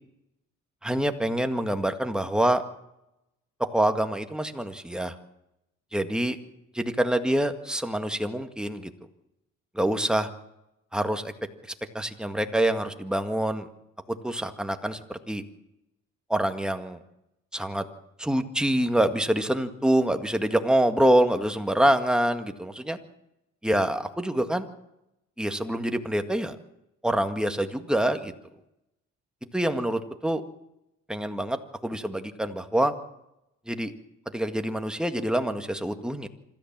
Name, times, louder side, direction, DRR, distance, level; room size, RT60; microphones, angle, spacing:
voice 1, 0.8-2.6 3.7-5.2 5.9-6.4 6.7-8.9 9.7-10.3 10.9-11.3 11.9-13.7 14.1-15.4 16.3-17.0 17.5-17.8 18.2-23.0 23.6-24.7 25.4-26.6 27.0-28.3 29.5-30.4 31.1-32.9 33.7-33.9 34.3-36.3, right 1 dB, 5° right, 7 dB, 1.9 m, -26 dB
26.0 x 13.5 x 7.4 m, 0.87 s
cardioid pair, 90°, 30 cm